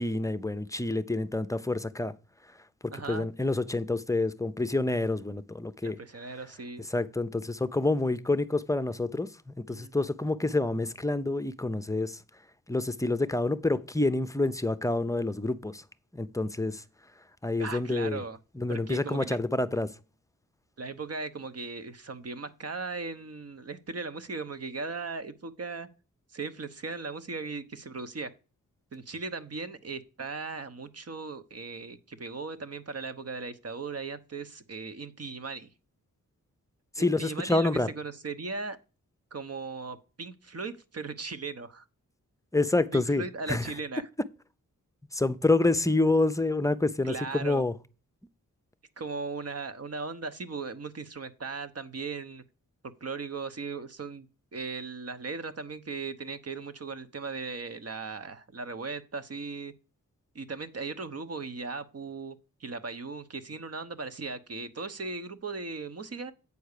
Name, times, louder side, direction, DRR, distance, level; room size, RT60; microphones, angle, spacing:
voice 1, 0.0-2.1 2.8-6.0 6.9-12.2 12.7-15.8 16.1-16.8 17.4-18.2 18.6-19.9 37.0-37.9 42.5-43.7 45.1-47.7, left 2 dB, 10° left, 0.6 m, -28 dB
voice 2, 2.9-3.3 5.8-6.9 9.7-9.9 17.6-18.4 18.7-19.4 20.8-25.9 26.3-28.3 28.9-35.7 37.0-38.8 39.3-41.8 42.9-44.1 47.0-47.6 49.0-52.4 53.0-59.7 60.3-66.3, right 4 dB, 45° right, 1.0 m, -38 dB
8.4 x 4.6 x 6.7 m
cardioid pair, 60°, 34 cm